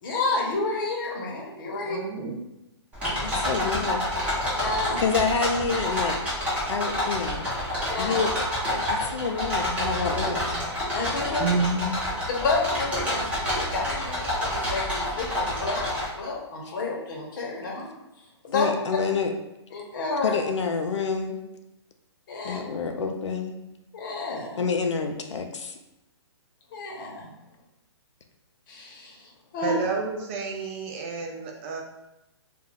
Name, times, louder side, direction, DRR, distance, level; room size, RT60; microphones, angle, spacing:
voice 1, 0.0-2.0 4.6-5.0 7.9-8.2 10.9-11.5 12.3-17.9 18.4-18.7 19.7-20.3 22.3-22.6 23.9-24.6 26.7-27.3 28.7-29.7, left 3 dB, 45° left, -1 dB, 0.8 m, -30 dB
voice 2, 1.8-2.4 11.4-11.9 29.6-31.8, right 3 dB, 25° right, 0 dB, 0.3 m, -29 dB
sound 1, 2.9-16.0, left 1 dB, 10° right, 0.9 m, -28 dB
voice 3, 3.2-4.1 5.0-6.2 6.7-7.5 8.0-8.3 8.9-10.6 18.5-19.3 20.2-21.4 22.4-23.5 24.6-25.8, left 5 dB, 80° left, 5 dB, 0.4 m, -28 dB
2.3 x 2.2 x 3.3 m, 0.92 s
hypercardioid pair, 140°, 15 cm